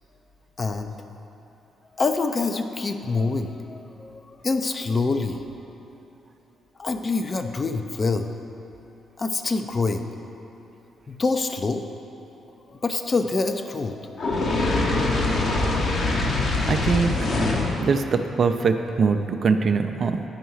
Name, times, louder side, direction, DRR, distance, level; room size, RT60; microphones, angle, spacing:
voice 1, 0.6-1.0 2.0-5.4 6.8-8.3 9.2-10.1 11.1-11.8 12.7-14.9, left 3 dB, 35° left, 6 dB, 0.5 m, -26 dB
Fire, 14.2-17.8, left 2 dB, 50° left, 1.0 m, -23 dB
voice 2, 16.7-17.2 17.8-20.2, right 5 dB, 45° right, 7 dB, 0.4 m, -22 dB
9.0 x 5.4 x 4.6 m, 3.0 s
figure-of-eight pair, 40°, 0 cm